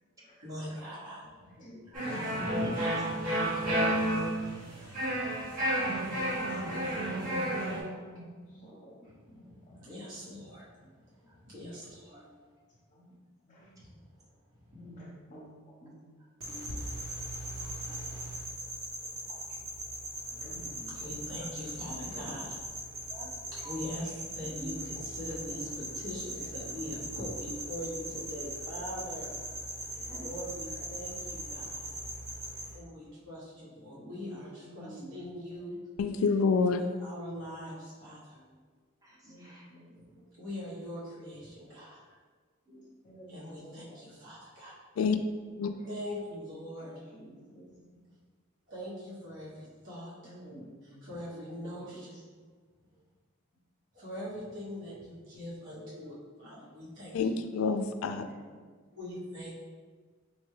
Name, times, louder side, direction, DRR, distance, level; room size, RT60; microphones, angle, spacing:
voice 1, 0.4-1.3 7.0-7.1 9.5-10.7 11.4-12.2 14.7-14.8 21.0-22.6 23.0-23.1 23.5-29.4 30.2-32.0 32.7-35.8 36.7-38.4 40.4-42.0 43.3-44.7 45.8-47.0 48.7-50.3 51.0-52.2 53.9-57.4 58.9-59.5, equal, 65° right, -9 dB, 1.1 m, -42 dB
voice 2, 1.4-2.9 7.8-9.9 10.2-10.4 10.8-10.9 11.2-11.4 12.9-13.2 13.5-13.8 14.7-16.1 17.9-18.2 19.0-19.4 20.2-21.7 23.2-23.3 24.4-24.8 26.3-26.5 27.8-28.2 28.7-29.0 29.8-30.7 33.8-35.6 39.2-40.3 41.5-41.8 42.0-42.1 43.0-44.0 45.7-45.9 46.7-48.0 50.2-51.3 51.6-52.0 56.0-56.1 57.8-58.6, right 1 dB, 35° left, -6 dB, 0.8 m, -52 dB
sound 1, 1.9-7.8, right 1 dB, 45° right, 1.3 m, -31 dB
voice 3, 2.9-3.8 4.7-4.9 5.9-6.2 6.7-6.8 11.3-11.4 12.1-12.5 16.5-16.8 17.4-18.0 21.4-21.5 23.1-23.8 29.9-30.2 33.9-34.1 38.3-38.5 39.0-39.7 42.7-42.9 47.0-47.1 51.3-51.5 55.7-55.9, right 1 dB, 15° right, -4 dB, 0.7 m, -54 dB
sound 2, 16.4-32.7, right 1 dB, 85° right, 1.0 m, -40 dB
voice 4, 36.0-36.8 45.0-45.2 45.6-45.7 57.1-58.2, left 5 dB, 85° left, 9 dB, 0.3 m, -27 dB
4.4 x 2.2 x 3.2 m, 1.5 s
head